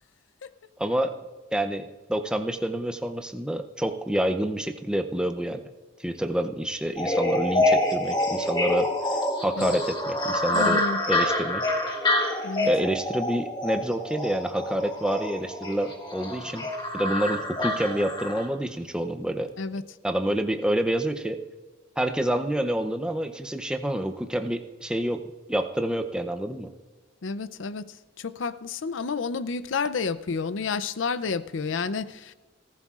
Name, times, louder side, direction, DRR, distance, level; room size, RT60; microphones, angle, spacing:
voice 1, 0.8-1.2 1.5-5.6 6.0-8.9 9.4-11.6 12.6-16.7 16.9-19.5 20.0-21.4 22.0-25.2 25.5-26.7, right 1 dB, 5° right, 0.6 m, -28 dB
sound 1, 7.0-18.5, left 1 dB, 20° left, 1.6 m, -27 dB
voice 2, 10.5-11.0 12.4-12.7 19.6-19.8 27.2-32.3, left 4 dB, 70° left, 0.5 m, -30 dB
19.0 x 14.5 x 2.5 m
head